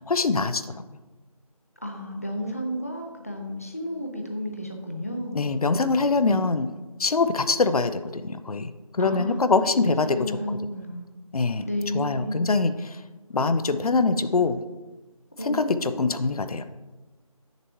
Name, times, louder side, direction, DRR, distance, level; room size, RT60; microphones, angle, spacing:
voice 1, 0.1-0.6 5.3-6.7 7.0-8.7 9.0-10.1 11.3-11.6 11.9-12.7 13.3-14.6 15.5-16.6, left 3 dB, 75° left, 11 dB, 0.5 m, -23 dB
voice 2, 1.8-5.4 9.0-11.1 11.6-12.4 15.4-16.1, equal, 25° left, 3 dB, 0.5 m, -32 dB
7.6 x 6.7 x 3.0 m, 1.2 s
figure-of-eight pair, 175°, 19 cm